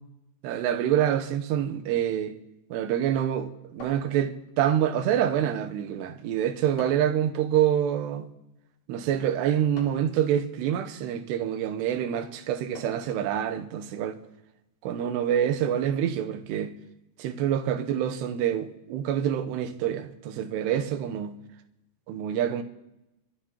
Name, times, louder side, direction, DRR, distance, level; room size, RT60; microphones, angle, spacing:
voice 1, 0.4-2.4 2.7-8.2 8.9-14.2 14.8-16.7 17.2-21.4 22.1-22.6, right 10 dB, 75° right, 2.9 m, -26 dB
sound 1, 3.8-4.7 6.8-7.2 9.7-10.2 12.7-13.2, left 2 dB, 40° left, 2.8 m, -45 dB
24.0 x 13.0 x 2.9 m
omnidirectional pair, 5.1 m